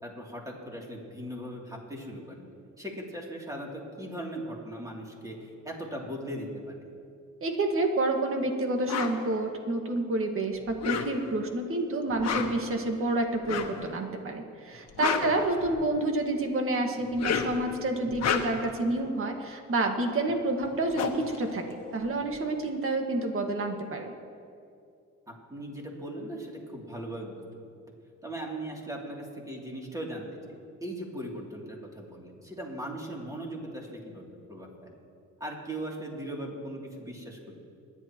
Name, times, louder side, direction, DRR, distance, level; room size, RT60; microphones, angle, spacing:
voice 1, 0.0-2.4 2.8-6.7 15.2-15.8 25.3-27.4 28.2-34.9 35.4-37.6, right 1 dB, 10° right, -2 dB, 3.0 m, -39 dB
voice 2, 7.4-24.1, right 2 dB, 45° right, 3 dB, 1.8 m, -29 dB
sound 1, 8.9-9.2 10.7-11.4 12.1-12.7 13.4-13.8 14.7-16.0 17.0-17.6 18.1-18.7 20.3-20.4 20.6-22.3, left 7 dB, 60° left, 1.3 m, -31 dB
28.0 x 11.0 x 3.1 m, 2.4 s
cardioid pair, 90°, 30 cm